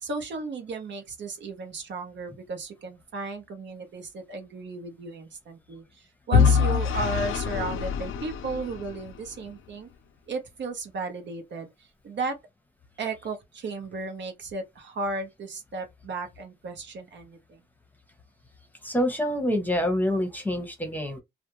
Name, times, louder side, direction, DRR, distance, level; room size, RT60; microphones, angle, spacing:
voice 1, 0.0-9.9 10.3-12.4 13.0-17.6, right 3 dB, 60° right, 0.8 m, -35 dB
Vehicle / Engine, 6.3-9.3, left 6 dB, 80° left, 0.5 m, -24 dB
voice 2, 18.8-21.2, equal, 10° left, 0.8 m, -26 dB
2.5 x 2.1 x 2.9 m
cardioid pair, 90°, 21 cm